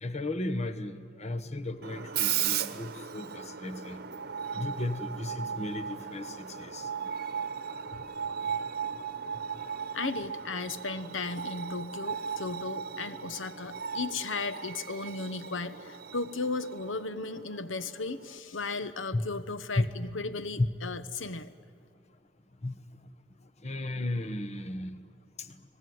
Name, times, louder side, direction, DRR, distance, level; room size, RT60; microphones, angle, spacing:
voice 1, 0.0-4.0 4.5-6.9 19.1-19.2 19.8-19.9 20.6-20.7 22.6-22.8 23.6-25.0 25.4-25.5, left 2 dB, 35° left, 8 dB, 1.2 m, -34 dB
Screech, 1.8-18.4, right 8 dB, 55° right, 1.0 m, -37 dB
voice 2, 9.9-21.5, left 3 dB, 80° left, 11 dB, 1.0 m, -35 dB
30.0 x 19.5 x 9.5 m, 2.3 s
head